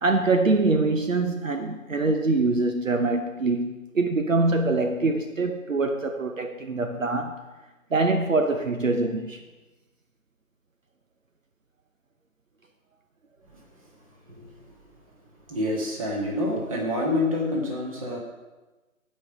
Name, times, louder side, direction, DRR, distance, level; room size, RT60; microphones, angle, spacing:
voice 1, 0.0-7.4 7.9-9.4, right 3 dB, 65° right, 6 dB, 0.9 m, -24 dB
voice 2, 15.5-18.2, left 1 dB, 25° right, -1 dB, 1.8 m, -27 dB
16.0 x 5.5 x 4.9 m, 1.2 s
figure-of-eight pair, 150°, 42 cm